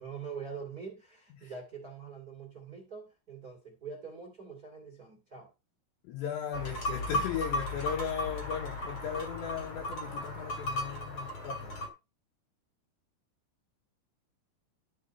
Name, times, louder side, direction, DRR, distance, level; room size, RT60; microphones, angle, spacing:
voice 1, 0.0-5.5, right 5 dB, 40° right, 1.3 m, -44 dB
voice 2, 6.0-11.8, left 8 dB, 70° left, 3.4 m, -37 dB
sound 1, 6.5-11.9, left 1 dB, 35° left, 2.5 m, -35 dB
12.5 x 5.3 x 4.1 m
omnidirectional pair, 5.7 m